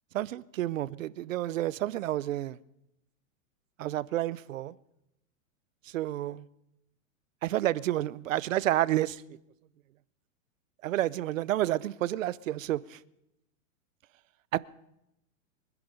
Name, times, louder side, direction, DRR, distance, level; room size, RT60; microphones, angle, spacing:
voice 1, 0.1-2.6 3.8-4.7 5.9-6.4 7.4-9.2 10.8-13.0 14.5-14.6, right 14 dB, 70° right, 0.7 m, -30 dB
24.0 x 10.5 x 5.2 m
supercardioid pair, 180°, 41 cm